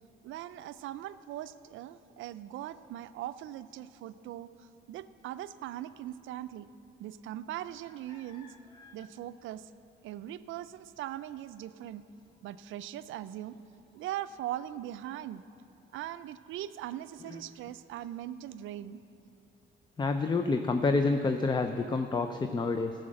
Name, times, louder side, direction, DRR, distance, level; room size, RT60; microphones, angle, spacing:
voice 1, 0.2-6.7 7.0-8.5 8.9-9.7 10.0-12.0 12.4-13.6 13.9-15.4 15.9-19.0, right 12 dB, 80° right, 13 dB, 0.4 m, -40 dB
voice 2, 8.2-8.9 17.3-17.4 20.0-22.9, left 3 dB, 20° left, 8 dB, 0.5 m, -29 dB
13.5 x 6.4 x 7.7 m, 2.6 s
cardioid pair, 90°, 20 cm